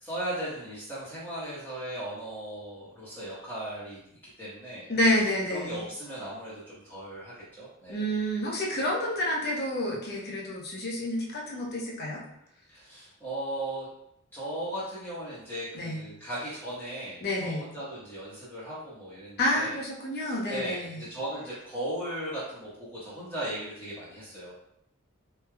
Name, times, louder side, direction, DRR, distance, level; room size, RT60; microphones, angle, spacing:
voice 1, 0.0-4.9 5.5-8.1 12.7-13.9 14.3-19.7 20.1-24.5, right 1 dB, 10° left, -11 dB, 1.1 m, -37 dB
voice 2, 4.9-5.8 7.9-12.2 15.7-16.0 17.2-17.6 19.4-21.0, left 1 dB, 50° left, -3 dB, 0.9 m, -29 dB
4.5 x 3.2 x 2.3 m, 0.76 s
head